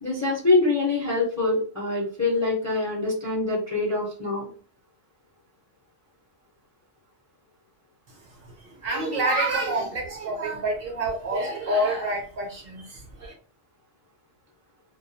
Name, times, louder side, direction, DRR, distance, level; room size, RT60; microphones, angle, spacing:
voice 1, 0.0-4.5, left 3 dB, 20° left, -3 dB, 0.5 m, -24 dB
voice 2, 8.1-13.3, right 1 dB, 60° right, 0 dB, 0.8 m, -28 dB
2.3 x 2.3 x 2.6 m, 0.40 s
omnidirectional pair, 1.3 m